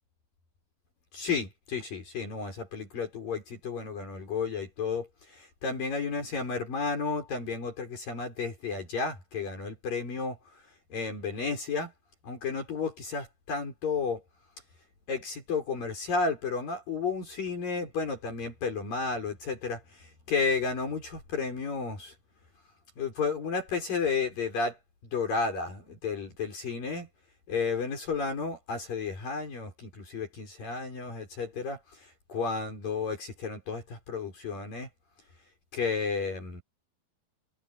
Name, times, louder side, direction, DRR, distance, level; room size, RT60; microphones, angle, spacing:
voice 1, 1.1-11.9 12.2-14.2 15.1-22.2 23.0-24.8 25.1-27.1 27.5-34.9 35.7-36.6, left 4 dB, 50° left, 7.1 m, -32 dB
omnidirectional pair, 5.0 m